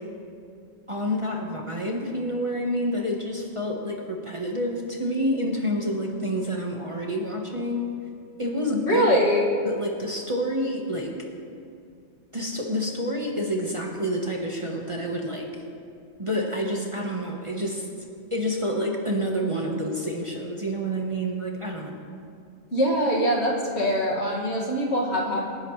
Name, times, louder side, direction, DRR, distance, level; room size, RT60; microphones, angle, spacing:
voice 1, 0.9-7.9 8.4-9.2 9.6-11.2 12.3-15.5 16.2-17.9 18.3-21.9, equal, 25° right, -1 dB, 1.2 m, -28 dB
voice 2, 8.9-9.4 22.7-25.5, equal, 55° left, -2 dB, 2.3 m, -23 dB
26.0 x 10.5 x 3.2 m, 2.4 s
omnidirectional pair, 1.4 m